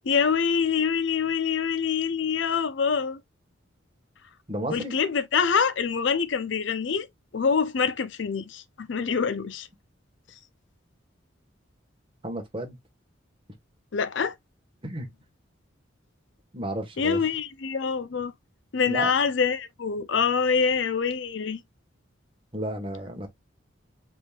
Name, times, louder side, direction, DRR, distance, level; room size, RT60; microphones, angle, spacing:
voice 1, 0.1-3.2 4.7-7.1 7.3-9.7 13.9-14.3 17.0-18.3 18.7-21.6, left 6 dB, 65° left, 0.5 m, -25 dB
voice 2, 4.5-4.9 12.2-12.8 14.8-15.1 16.5-17.2 18.9-19.1 22.5-23.3, right 1 dB, 25° right, 1.3 m, -32 dB
5.1 x 3.6 x 2.3 m
head